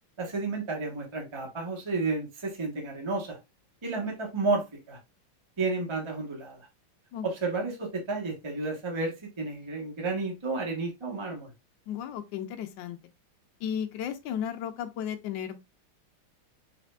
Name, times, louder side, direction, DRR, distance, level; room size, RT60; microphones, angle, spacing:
voice 1, 0.2-3.4 3.8-5.0 5.6-6.7 7.2-11.5, right 3 dB, 30° right, 0.5 m, -31 dB
voice 2, 11.9-13.0 13.6-15.6, left 9 dB, 75° left, 1.2 m, -34 dB
5.0 x 3.4 x 2.3 m
omnidirectional pair, 2.4 m